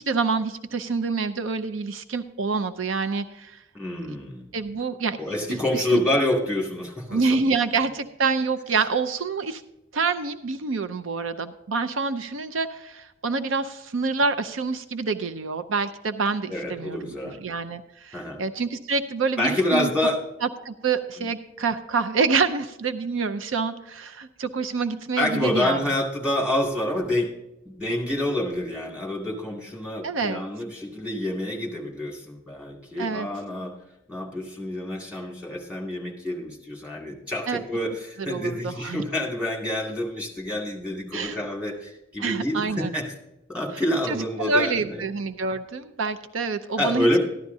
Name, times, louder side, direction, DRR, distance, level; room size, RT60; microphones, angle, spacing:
voice 1, 0.0-3.6 4.1-4.2 4.5-5.2 5.5-6.0 7.1-9.6 9.9-19.9 20.4-25.8 30.0-30.4 33.0-33.3 37.5-37.6 38.2-39.0 41.1-41.4 42.2-42.9 44.1-47.1, right 4 dB, 85° right, 10 dB, 0.6 m, -27 dB
voice 2, 3.7-4.5 5.2-7.5 16.5-17.4 18.1-18.4 19.4-20.2 25.2-27.3 27.7-33.7 34.1-43.0 43.5-45.0 46.8-47.2, left 1 dB, 5° right, -2 dB, 2.3 m, -27 dB
14.0 x 11.5 x 2.7 m, 0.91 s
head